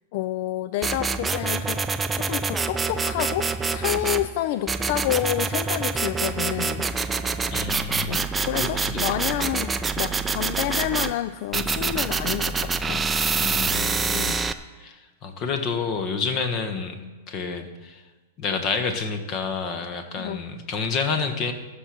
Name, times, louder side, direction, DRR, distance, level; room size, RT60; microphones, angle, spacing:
voice 1, 0.1-1.8 2.1-6.8 8.1-13.0 14.1-14.4 20.2-20.4, left 14 dB, 55° left, 12 dB, 0.4 m, -29 dB
sound 1, 0.8-4.3 4.7-11.1 11.5-14.5, right 4 dB, 10° right, 0.5 m, -26 dB
voice 2, 7.5-9.0 13.4-14.3 14.8-18.0 18.4-21.5, left 5 dB, 35° left, 7 dB, 1.3 m, -29 dB
13.5 x 6.5 x 6.1 m, 1.2 s
hypercardioid pair, 140°, 0 cm